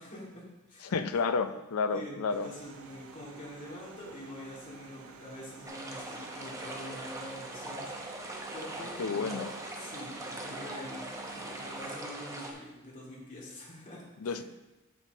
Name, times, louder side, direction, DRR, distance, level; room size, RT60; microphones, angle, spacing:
voice 1, 0.0-0.9 1.9-8.2 8.5-9.5 9.7-14.4, left 1 dB, 40° left, -6 dB, 2.5 m, -45 dB
voice 2, 0.8-2.5 9.0-9.5 14.2-14.4, left 4 dB, 75° left, 10 dB, 0.5 m, -31 dB
sound 1, 2.3-11.9, right 5 dB, 70° right, 0.6 m, -51 dB
sound 2, 5.7-12.5, right 1 dB, 15° right, 0.8 m, -41 dB
9.1 x 5.8 x 3.1 m, 1.1 s
head